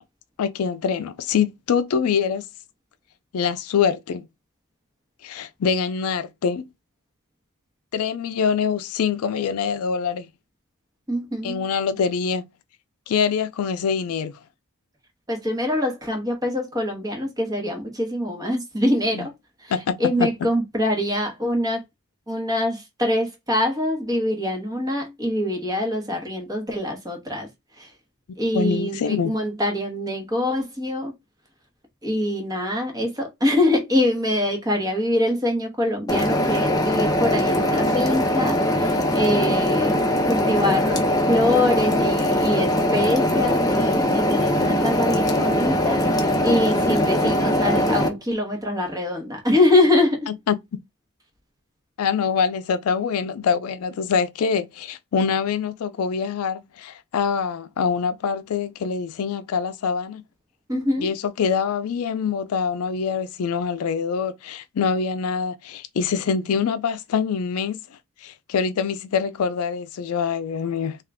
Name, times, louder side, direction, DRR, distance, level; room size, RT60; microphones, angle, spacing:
voice 1, 0.4-2.5 3.3-4.3 5.2-6.6 7.9-10.3 11.4-12.5 13.1-14.3 19.1-19.3 19.7-20.3 28.5-29.3 50.3-50.6 52.0-60.2 61.0-67.8 68.2-71.0, left 6 dB, 75° left, 0.4 m, -24 dB
voice 2, 11.1-11.6 15.3-19.3 19.6-19.7 20.0-21.8 22.3-27.5 27.8-27.9 28.4-31.1 32.0-40.0 40.3-50.3 60.7-61.1, left 1 dB, 15° right, 1.1 m, -24 dB
sound 1, 36.1-48.1, left 1 dB, 15° left, 0.7 m, -21 dB
3.6 x 2.4 x 3.4 m
head